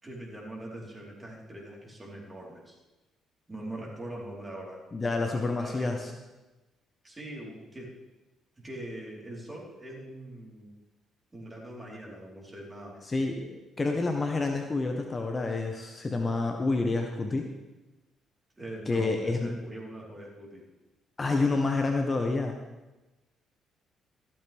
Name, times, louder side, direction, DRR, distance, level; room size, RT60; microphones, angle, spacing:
voice 1, 0.0-2.8 3.5-4.8 5.3-6.1 7.0-7.9 8.6-10.7 11.3-13.0 18.6-20.6, right 1 dB, 20° right, -3 dB, 4.3 m, -42 dB
voice 2, 4.9-6.1 13.0-17.5 18.9-19.5 21.2-22.6, left 3 dB, 30° left, 3 dB, 1.4 m, -28 dB
14.5 x 12.5 x 3.6 m, 1.1 s
figure-of-eight pair, 45°, 0 cm